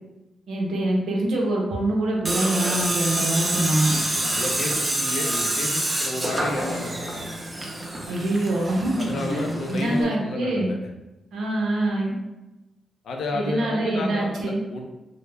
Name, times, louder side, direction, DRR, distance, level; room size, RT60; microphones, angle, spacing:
voice 1, 0.5-3.9 8.1-10.7 11.3-12.1 13.3-14.6, right 1 dB, 80° right, -2 dB, 0.6 m, -25 dB
Tools, 2.3-10.0, right 1 dB, 35° right, 0.5 m, -27 dB
voice 2, 4.1-7.1 9.0-10.8 13.0-14.8, left 2 dB, 75° left, 2 dB, 0.4 m, -31 dB
2.1 x 2.0 x 3.3 m, 1.0 s
supercardioid pair, 55°, 0 cm